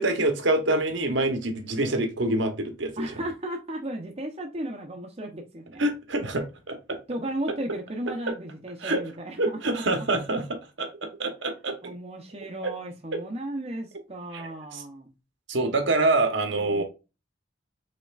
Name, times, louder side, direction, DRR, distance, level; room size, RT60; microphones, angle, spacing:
voice 1, 0.0-3.2 5.8-7.0 8.3-8.4 8.8-9.0 9.4-11.9 12.6-12.7 13.1-13.2 14.3-14.8 15.5-16.8, right 2 dB, 65° right, 1.0 m, -26 dB
voice 2, 3.0-5.8 7.1-9.8 11.8-15.1 16.5-16.8, right 1 dB, 30° right, 0.7 m, -35 dB
5.3 x 3.7 x 2.4 m
head